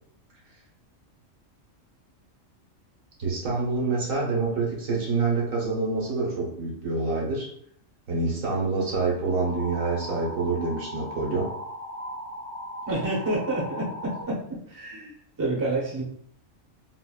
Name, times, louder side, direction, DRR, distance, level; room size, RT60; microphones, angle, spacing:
voice 1, 3.2-7.5 8.1-11.5, right 3 dB, 80° right, -3 dB, 1.4 m, -27 dB
sound 1, 9.2-14.2, equal, 40° left, 0.6 m, -38 dB
voice 2, 12.9-14.4 14.7-16.0, right 2 dB, 20° right, -3 dB, 0.5 m, -28 dB
3.9 x 2.1 x 2.3 m, 0.65 s
omnidirectional pair, 1.4 m